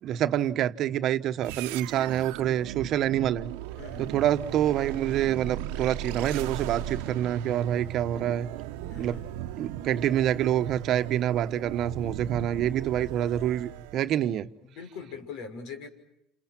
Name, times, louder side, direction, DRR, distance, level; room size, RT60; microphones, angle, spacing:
voice 1, 0.0-3.5 4.0-8.5 8.9-9.2 9.6-14.5, right 11 dB, 55° right, 1.1 m, -27 dB
sound 1, 1.4-14.1, right 12 dB, 85° right, 1.0 m, -37 dB
voice 2, 3.8-4.3 8.9-9.3 14.6-15.9, left 5 dB, 75° left, 5.8 m, -42 dB
29.5 x 28.5 x 6.0 m
supercardioid pair, 115°, 0 cm